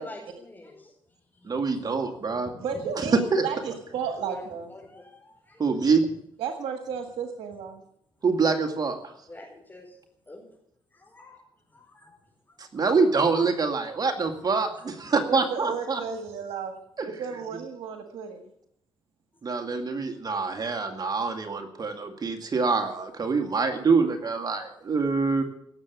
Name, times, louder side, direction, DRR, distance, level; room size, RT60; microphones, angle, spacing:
voice 1, 0.0-1.5 2.2-3.0 3.3-3.4 3.9-5.9 9.3-10.0 10.3-10.5 10.9-11.4 11.7-12.2 12.5-12.8 14.6-14.9 24.0-24.3, left 2 dB, 20° left, -4 dB, 5.0 m, -48 dB
voice 2, 1.5-2.5 3.0-3.4 5.6-6.1 8.2-9.1 12.6-16.0 17.0-17.1 19.4-25.4, right 4 dB, 45° right, 5 dB, 2.1 m, -25 dB
voice 3, 2.6-4.7 6.4-7.8 15.3-16.7 17.0-18.4, right 6 dB, 85° right, 4 dB, 1.8 m, -33 dB
17.5 x 7.5 x 8.4 m, 0.73 s
cardioid pair, 75°, 9 cm